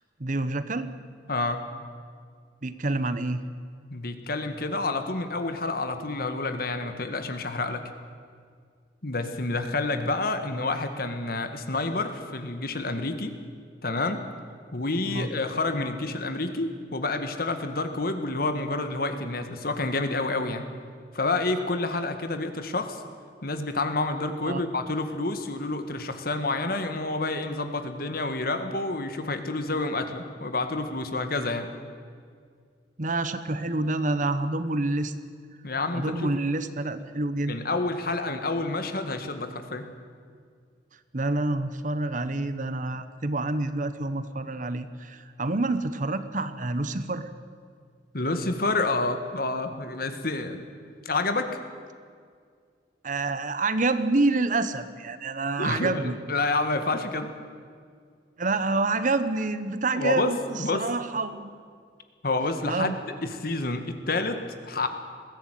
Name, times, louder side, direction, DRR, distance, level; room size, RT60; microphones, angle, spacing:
voice 1, 0.2-0.9 2.6-3.4 15.0-15.3 24.4-24.6 33.0-35.1 35.9-37.6 41.1-47.3 53.0-56.2 58.4-61.5 62.6-63.0, right 2 dB, 45° right, 12 dB, 1.1 m, -27 dB
voice 2, 1.3-1.6 3.9-7.8 9.0-13.3 13.8-14.2 14.7-20.6 21.1-23.0 23.4-31.7 35.6-36.3 37.5-39.9 48.1-50.6 51.1-51.6 55.6-57.3 59.9-60.9 62.2-62.9 63.2-64.4 64.7-64.9, left 2 dB, 55° left, 8 dB, 1.8 m, -29 dB
21.0 x 16.0 x 9.2 m, 2.1 s
head